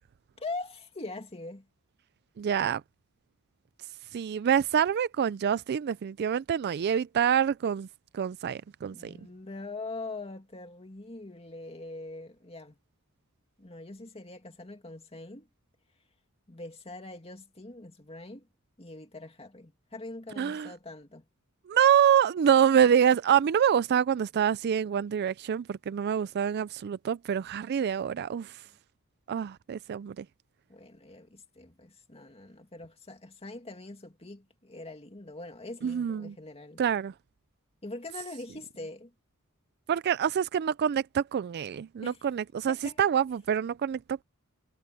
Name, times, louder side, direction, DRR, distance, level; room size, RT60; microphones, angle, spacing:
voice 1, 0.4-1.7 8.9-12.8 13.6-15.5 16.5-18.5 18.8-21.3 30.7-36.8 37.8-39.1 42.0-42.2 42.7-43.0, left 2 dB, 30° left, 2.3 m, -42 dB
voice 2, 2.4-2.8 4.1-7.9 8.1-9.1 20.4-20.7 21.7-28.6 29.3-30.3 35.8-36.3 36.8-37.1 39.9-44.2, right 8 dB, 50° right, 0.3 m, -26 dB
head